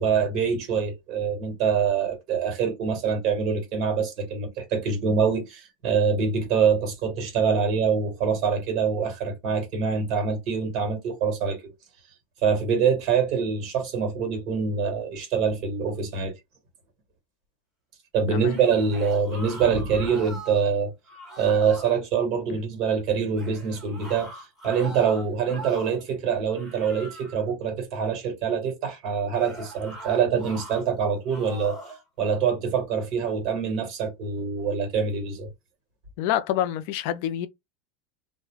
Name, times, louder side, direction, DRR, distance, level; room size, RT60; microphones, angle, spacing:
voice 1, 0.0-11.7 12.4-16.3 18.1-20.9 21.4-35.5, right 6 dB, 45° right, 1.3 m, -25 dB
sound 1, 18.3-20.7 21.1-22.0 23.3-26.1 26.5-27.5 29.3-30.8 31.3-32.0, right 1 dB, 15° right, 1.3 m, -42 dB
voice 2, 36.2-37.5, left 11 dB, 60° left, 0.3 m, -27 dB
2.3 x 2.1 x 3.1 m
supercardioid pair, 145°, 0 cm